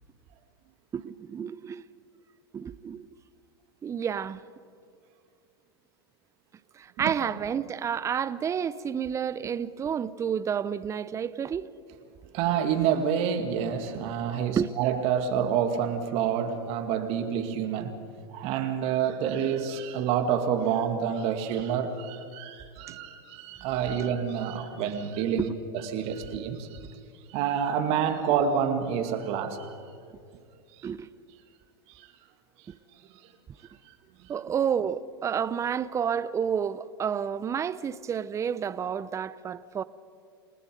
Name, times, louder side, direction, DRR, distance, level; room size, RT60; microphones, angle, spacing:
voice 1, 0.9-1.8 2.5-3.1 3.8-4.4 6.7-11.7 14.6-14.7 25.4-25.5 30.8-31.1 34.3-39.8, right 8 dB, 25° right, 0.7 m, -30 dB
voice 2, 12.3-17.9 18.3-25.5 25.9-26.8 27.3-29.8 32.0-32.1 34.2-34.3, right 8 dB, 50° right, 2.3 m, -28 dB
29.0 x 18.5 x 5.3 m
hypercardioid pair, 95°, 13 cm